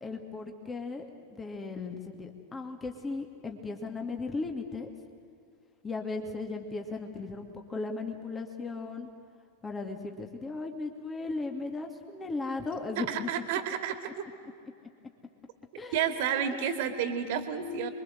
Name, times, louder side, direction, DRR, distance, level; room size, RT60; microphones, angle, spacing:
voice 1, 0.0-4.9 5.8-9.1 9.6-13.3 15.8-16.4 17.6-17.9, left 3 dB, 15° left, 3 dB, 2.3 m, -37 dB
voice 2, 13.0-14.0 15.9-17.9, right 8 dB, 50° right, 8 dB, 2.4 m, -30 dB
28.5 x 23.0 x 7.8 m, 2.4 s
figure-of-eight pair, 90°, 0 cm